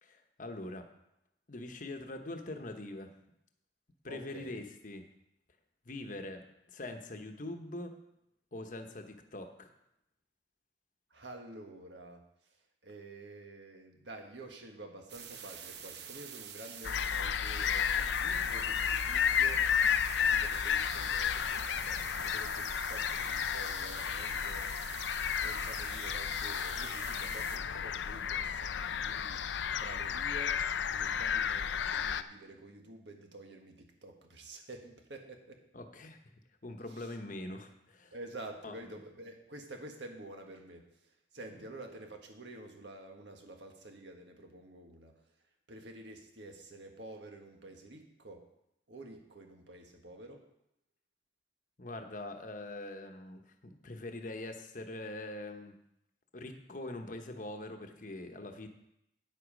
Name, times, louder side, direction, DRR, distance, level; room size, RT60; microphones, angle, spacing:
voice 1, 0.0-0.9 1.5-3.1 4.0-5.1 5.8-8.0 8.5-9.7 35.7-36.2 36.6-38.1 38.6-39.0 41.5-41.6 51.8-55.8 56.3-58.7, left 2 dB, 45° left, 6 dB, 1.0 m, -43 dB
voice 2, 4.0-4.6 11.1-12.2 12.8-19.7 20.2-24.7 25.4-29.4 29.8-35.6 36.9-37.1 38.1-40.8 41.3-45.1 45.7-48.4 48.9-50.5, right 2 dB, 85° right, 3 dB, 1.5 m, -49 dB
sound 1, 15.1-27.6, right 8 dB, 70° right, 0.8 m, -47 dB
sound 2, 16.8-32.2, left 8 dB, 90° left, 0.5 m, -32 dB
9.4 x 8.0 x 5.2 m, 0.81 s
head